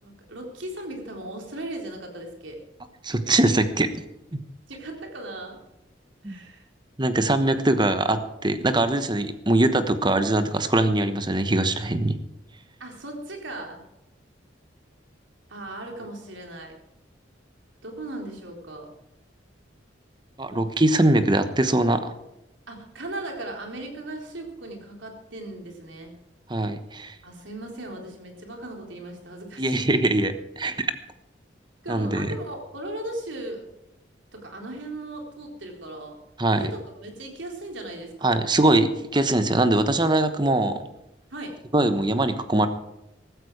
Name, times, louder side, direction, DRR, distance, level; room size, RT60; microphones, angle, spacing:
voice 1, 0.0-2.6 4.7-5.6 6.2-6.7 12.8-13.8 15.5-16.7 17.8-18.9 20.5-20.6 22.7-26.1 27.2-29.9 31.8-33.6 34.3-36.2 36.6-38.4 41.3-41.6, right 1 dB, 90° right, 2 dB, 3.9 m, -37 dB
voice 2, 3.0-3.9 4.3-4.4 6.2-6.4 7.0-12.2 20.4-22.1 26.5-27.2 29.6-30.9 31.9-32.3 36.4-36.7 38.2-40.8 41.7-42.7, right 1 dB, 25° right, 10 dB, 1.1 m, -22 dB
15.0 x 14.0 x 4.8 m, 0.88 s
head